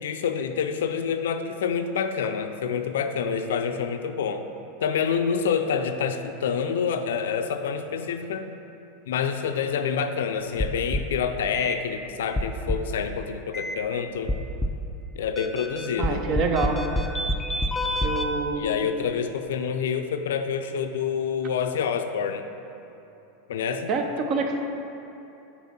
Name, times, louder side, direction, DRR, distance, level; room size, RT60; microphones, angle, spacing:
voice 1, 0.0-4.4 4.8-8.5 9.1-14.3 15.2-16.3 18.6-22.4 23.5-23.9, left 6 dB, 70° left, 8 dB, 0.4 m, -27 dB
sound 1, 10.6-11.2 11.5-11.8 12.4-12.9 13.5-13.8 14.3-14.9 15.4-18.3, left 1 dB, 10° left, 0.5 m, -27 dB
voice 2, 16.0-16.8 18.0-18.9 23.9-24.6, right 4 dB, 45° right, 4 dB, 0.7 m, -26 dB
5.7 x 4.3 x 5.7 m, 2.9 s
hypercardioid pair, 85°, 0 cm